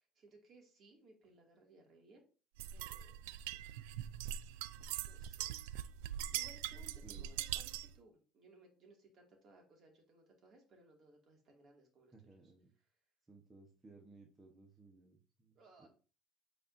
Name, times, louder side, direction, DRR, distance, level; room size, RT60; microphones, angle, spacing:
voice 1, 0.0-2.2 2.7-3.1 3.5-3.9 5.0-5.7 6.1-12.4 15.5-15.9, right 2 dB, 45° right, 1 dB, 2.4 m, -63 dB
sound 1, 2.6-8.0, right 12 dB, 90° right, 0.3 m, -42 dB
voice 2, 12.1-12.7 13.3-15.9, right 3 dB, 20° right, 0 dB, 1.2 m, -60 dB
8.7 x 4.2 x 2.7 m, 0.36 s
supercardioid pair, 110°, 0 cm